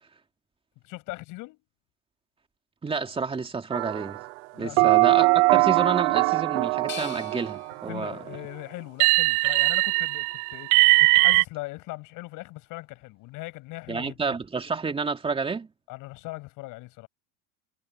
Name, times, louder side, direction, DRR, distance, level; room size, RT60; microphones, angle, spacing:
voice 1, 0.8-1.6 4.5-5.0 7.9-14.2 15.9-17.1, left 21 dB, 55° left, 7.8 m, -40 dB
voice 2, 2.8-4.2 4.6-8.2 13.9-15.7, right 4 dB, 15° right, 2.5 m, -29 dB
sound 1, 3.7-4.3 4.8-7.9 9.0-11.4, right 25 dB, 70° right, 0.5 m, -21 dB
sound 2, 6.9-9.8 10.3-11.2, left 9 dB, 30° left, 6.5 m, -46 dB
supercardioid pair, 120°, 38 cm